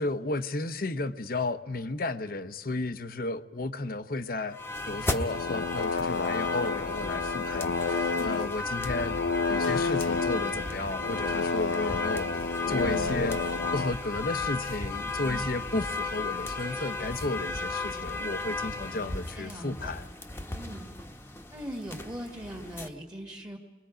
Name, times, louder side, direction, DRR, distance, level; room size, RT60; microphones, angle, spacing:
voice 1, 0.0-4.6 4.9-9.2 9.5-13.4 13.7-20.1, left 2 dB, 55° left, 11 dB, 0.9 m, -33 dB
sound 1, 4.5-22.9, left 3 dB, 15° left, 1.2 m, -35 dB
sound 2, 5.2-13.9, left 4 dB, 80° left, 0.7 m, -30 dB
sound 3, 12.0-13.6 13.9-14.0 14.6-14.7 15.0-15.7 16.4-16.5 16.8-16.9 17.2-17.5 18.3-18.4 18.7-18.8 19.4-19.5 19.8-19.9, equal, 55° right, 1.9 m, -41 dB
voice 2, 18.9-20.0 20.5-20.9 21.5-23.6, equal, 20° right, 0 dB, 1.9 m, -41 dB
30.0 x 22.5 x 5.1 m, 1.2 s
head